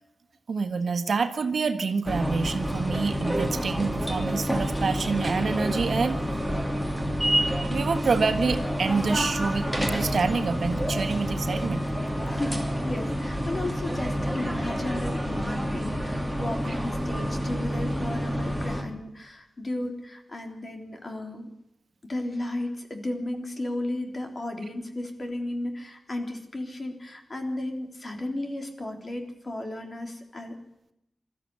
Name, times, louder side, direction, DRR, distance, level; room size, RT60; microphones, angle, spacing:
voice 1, 0.5-6.2 7.7-11.8, right 4 dB, 70° right, 8 dB, 1.5 m, -27 dB
sound 1, 2.0-18.8, equal, 5° left, 2.9 m, -28 dB
voice 2, 12.3-21.5 22.0-30.6, left 1 dB, 40° left, 3 dB, 3.6 m, -34 dB
20.0 x 13.5 x 9.6 m, 0.82 s
wide cardioid pair, 85°, 0 cm